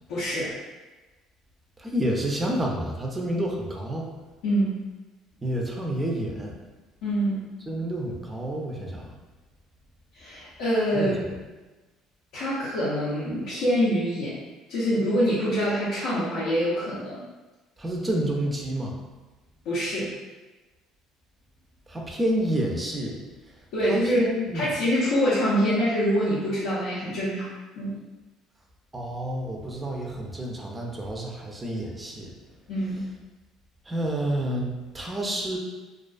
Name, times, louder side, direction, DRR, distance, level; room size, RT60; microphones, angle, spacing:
voice 1, 0.1-0.5 4.4-4.8 7.0-7.4 10.1-11.1 12.3-14.4 14.7-17.2 19.7-20.1 23.7-27.5 27.8-28.0 32.7-33.0, equal, 80° left, -9 dB, 0.6 m, -25 dB
voice 2, 1.8-4.1 5.4-6.5 7.7-9.1 10.9-11.1 17.8-18.9 21.9-23.2 23.9-24.7 28.9-32.3 33.9-35.6, right 1 dB, 15° right, 0 dB, 0.4 m, -29 dB
2.3 x 2.2 x 2.4 m, 1.2 s
cardioid pair, 105°, 0 cm